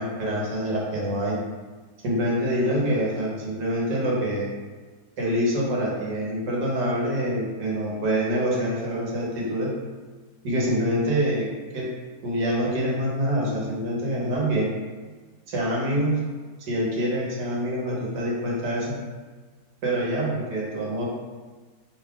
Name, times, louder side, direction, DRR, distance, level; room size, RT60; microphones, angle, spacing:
voice 1, 0.0-1.4 2.0-4.5 5.2-9.7 10.4-11.5 11.7-11.9 12.2-14.7 15.5-16.2 16.6-18.9 19.8-21.1, equal, 85° right, -4 dB, 1.8 m, -25 dB
5.3 x 2.4 x 3.8 m, 1.4 s
omnidirectional pair, 1.8 m